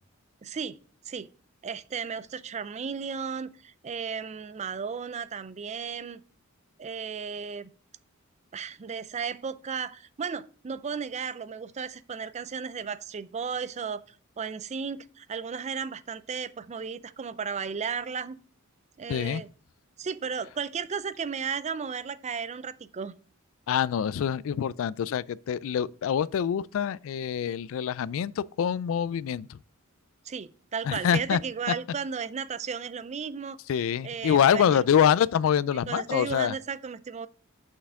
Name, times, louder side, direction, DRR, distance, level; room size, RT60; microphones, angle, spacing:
voice 1, 0.4-0.8 1.1-1.3 1.6-6.2 6.8-7.7 8.5-18.4 19.0-19.5 20.0-23.1 30.2-33.6 34.0-34.8 35.9-37.3, right 6 dB, 30° right, 0.4 m, -34 dB
voice 2, 19.1-19.4 23.7-29.6 30.9-31.4 33.7-36.5, left 8 dB, 65° left, 0.3 m, -25 dB
6.5 x 5.8 x 3.6 m
head